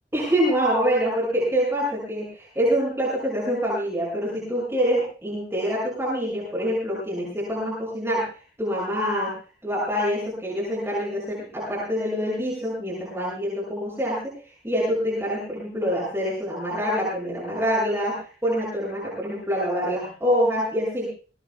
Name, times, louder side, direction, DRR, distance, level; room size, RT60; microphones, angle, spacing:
voice 1, 0.1-8.3 8.6-9.3 9.6-21.1, equal, 15° right, -6 dB, 6.6 m, -25 dB
22.0 x 18.0 x 2.3 m, 0.38 s
head